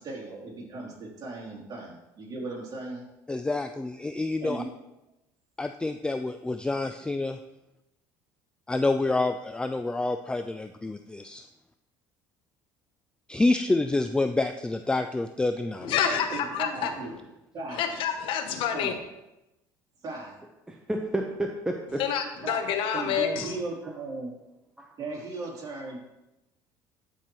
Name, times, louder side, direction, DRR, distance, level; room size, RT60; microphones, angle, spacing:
voice 1, 0.0-3.1 4.4-4.7 16.1-17.2 17.5-17.9 18.7-19.0 20.0-20.4 22.4-22.7 22.9-24.3 25.0-26.0, right 3 dB, 40° right, -3 dB, 2.8 m, -37 dB
voice 2, 3.3-4.6 5.6-7.4 8.7-11.4 13.3-16.0, left 2 dB, 10° left, 7 dB, 0.3 m, -28 dB
voice 3, 15.8-16.9 17.8-19.0 22.0-23.5, left 8 dB, 65° left, 6 dB, 0.9 m, -28 dB
voice 4, 20.7-22.0 22.9-23.5 24.8-24.9, right 1 dB, 5° right, 1 dB, 0.8 m, -32 dB
11.5 x 4.5 x 3.0 m, 0.95 s
supercardioid pair, 85°, 10 cm